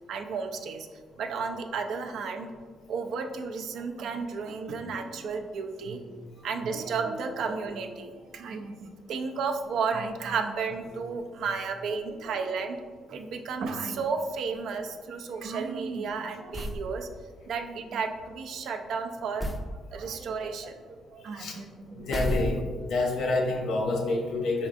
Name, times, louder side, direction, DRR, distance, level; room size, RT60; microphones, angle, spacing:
voice 1, 0.1-0.9 1.2-2.5 2.9-12.8 13.1-17.1 17.5-19.5 19.9-22.2, right 5 dB, 75° right, 5 dB, 0.4 m, -33 dB
sound 1, 16.5-16.9 19.4-19.7 22.1-22.9, equal, 10° left, 0.4 m, -31 dB
voice 2, 22.0-22.6 22.8-24.7, left 2 dB, 75° left, 1 dB, 0.8 m, -27 dB
4.2 x 3.4 x 2.5 m, 1.6 s
cardioid pair, 90°, 0 cm